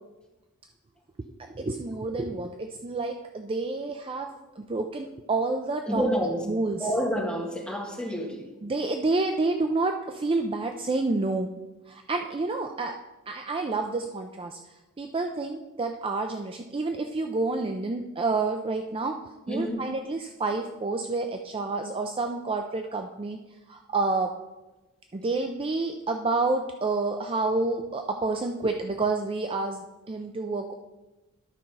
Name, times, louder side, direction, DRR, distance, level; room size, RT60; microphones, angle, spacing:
voice 1, 1.4-6.0 6.5-6.9 8.6-11.5 11.9-13.0 13.3-14.6 15.0-19.2 19.5-23.4 23.7-24.3 25.1-30.7, right 3 dB, 25° right, 5 dB, 0.4 m, -29 dB
voice 2, 5.9-6.4 6.8-8.5 19.5-19.8, equal, 5° left, -1 dB, 1.5 m, -28 dB
11.5 x 4.4 x 5.4 m, 1.1 s
head